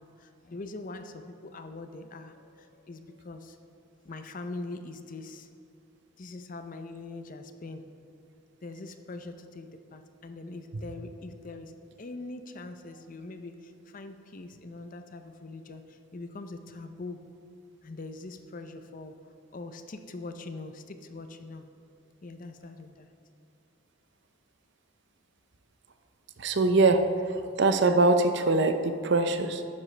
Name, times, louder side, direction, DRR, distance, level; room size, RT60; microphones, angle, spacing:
voice 1, 0.0-3.6 4.0-5.5 6.2-7.8 8.6-17.2 17.8-19.2 19.5-21.7 22.2-23.1, left 2 dB, 40° left, 8 dB, 0.5 m, -42 dB
voice 2, 26.4-27.0 27.6-29.7, right 3 dB, 55° right, 8 dB, 0.6 m, -22 dB
11.5 x 9.6 x 3.3 m, 2.6 s
head